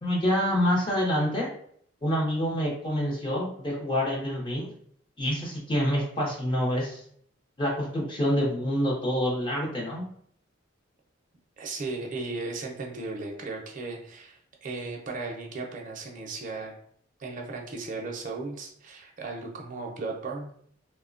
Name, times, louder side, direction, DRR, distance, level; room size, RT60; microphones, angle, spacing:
voice 1, 0.0-1.5 2.0-4.7 5.2-7.0 7.6-10.1, equal, 25° left, -3 dB, 0.6 m, -27 dB
voice 2, 11.6-16.7 17.2-20.5, right 3 dB, 40° right, 1 dB, 0.5 m, -36 dB
3.0 x 2.1 x 2.4 m, 0.63 s
head